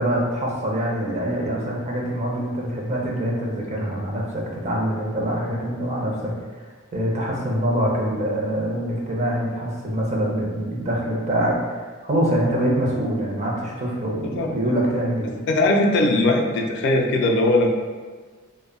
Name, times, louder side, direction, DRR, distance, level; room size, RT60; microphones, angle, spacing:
voice 1, 0.0-6.7 6.9-11.8 12.0-15.3, right 1 dB, 35° right, -2 dB, 0.5 m, -24 dB
voice 2, 15.5-17.7, left 2 dB, 55° left, 1 dB, 0.3 m, -19 dB
2.1 x 2.0 x 3.5 m, 1.4 s
head